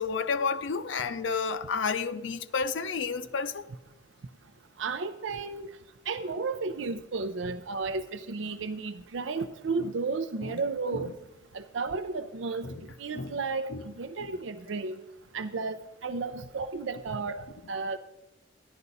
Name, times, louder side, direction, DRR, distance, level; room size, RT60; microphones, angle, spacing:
voice 1, 0.0-3.6 10.4-10.6 10.9-11.0 12.6-12.8 13.1-13.4 13.7-13.8, left 5 dB, 85° left, 0.6 m, -31 dB
voice 2, 4.8-5.7 6.1-11.1 11.5-12.7 13.0-15.0 15.3-18.0, right 4 dB, 90° right, 0.5 m, -33 dB
14.0 x 11.0 x 4.0 m
head